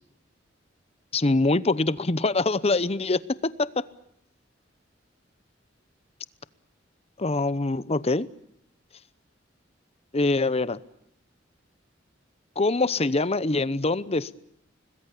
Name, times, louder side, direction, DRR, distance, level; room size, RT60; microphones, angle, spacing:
voice 1, 1.1-3.8 7.2-8.3 10.1-10.8 12.6-14.3, left 2 dB, 35° left, 17 dB, 0.9 m, -24 dB
25.5 x 20.5 x 8.5 m, 0.73 s
head